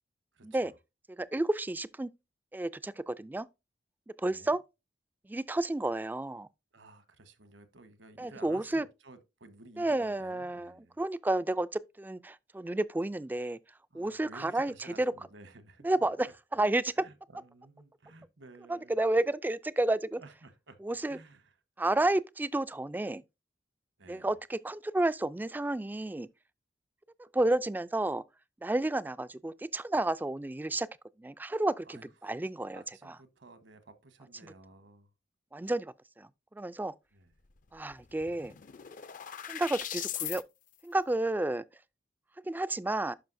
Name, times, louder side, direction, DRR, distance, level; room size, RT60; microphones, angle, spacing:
voice 1, 0.3-0.7 4.3-4.5 6.7-11.0 13.9-15.9 17.0-19.0 20.2-20.8 21.1-21.5 24.0-24.3 31.8-32.3 32.7-35.1 37.1-37.3, right 2 dB, 70° right, 1.2 m, -54 dB
voice 2, 1.2-2.1 2.5-3.5 4.2-4.6 5.3-6.5 8.2-8.9 9.8-13.6 13.9-15.1 15.8-17.0 18.7-20.2 20.8-21.2 21.8-23.2 24.1-26.3 27.2-28.2 28.6-30.9 31.2-33.1 35.5-36.9 37.7-38.5 39.5-40.4 40.8-41.6 42.4-43.1, right 2 dB, 10° right, 0.3 m, -31 dB
sound 1, 37.6-37.7 37.9-40.4, left 11 dB, 45° left, 0.5 m, -39 dB
11.5 x 5.1 x 2.6 m
head